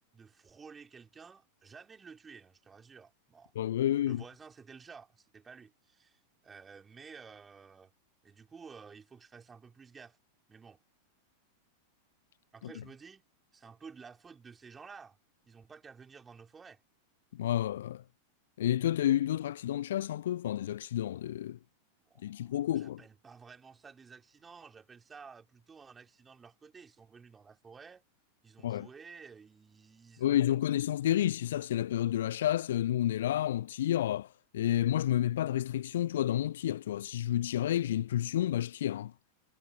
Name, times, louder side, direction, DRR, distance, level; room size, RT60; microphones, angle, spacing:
voice 1, 0.1-3.5 4.1-7.9 8.2-10.2 10.5-10.8 12.5-13.2 13.5-15.2 15.4-16.8 22.1-28.0 28.4-30.6, right 5 dB, 15° right, 6.0 m, -53 dB
voice 2, 3.6-4.2 12.6-12.8 17.3-18.0 18.6-21.6 22.2-23.0 28.6-28.9 30.2-39.1, left 12 dB, 60° left, 0.3 m, -30 dB
figure-of-eight pair, 90°, 0 cm